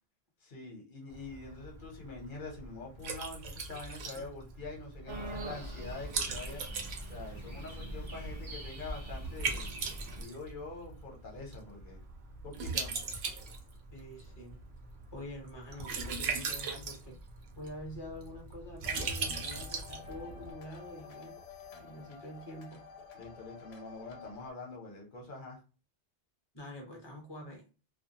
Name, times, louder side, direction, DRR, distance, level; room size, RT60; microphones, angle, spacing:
voice 1, 0.4-6.6 7.1-9.7 10.2-12.0 12.4-12.9 23.1-25.6, left 3 dB, 50° left, 0 dB, 1.0 m, -45 dB
Liquid, 1.1-20.5, right 5 dB, 80° right, 0.9 m, -40 dB
sound 1, 5.1-10.2, right 1 dB, 35° right, 0.6 m, -42 dB
voice 2, 13.9-14.6 15.1-17.2 17.6-21.4 21.8-22.8 26.5-27.6, left 1 dB, 25° left, 0 dB, 0.8 m, -46 dB
sound 2, 18.8-24.5, left 6 dB, 80° left, 0.9 m, -50 dB
2.4 x 2.2 x 2.7 m, 0.33 s
omnidirectional pair, 1.1 m